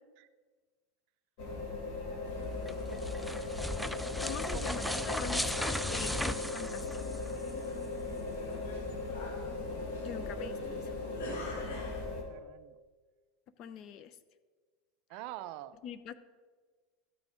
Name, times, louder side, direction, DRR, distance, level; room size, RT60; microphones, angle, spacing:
sound 1, 1.4-12.2, left 3 dB, 60° left, 2.2 m, -38 dB
sound 2, 2.2-12.1, left 2 dB, 80° left, 2.0 m, -47 dB
sound 3, 2.5-7.5, left 1 dB, 5° left, 0.4 m, -36 dB
voice 1, 4.2-7.2 10.0-10.9 13.6-14.1 15.1-15.2 15.8-16.1, left 9 dB, 45° left, 14 dB, 0.6 m, -44 dB
voice 2, 11.3-12.0 12.3-12.8 15.1-15.7, right 14 dB, 60° right, 13 dB, 0.5 m, -45 dB
13.0 x 6.0 x 5.1 m, 1.4 s
supercardioid pair, 135°, 0 cm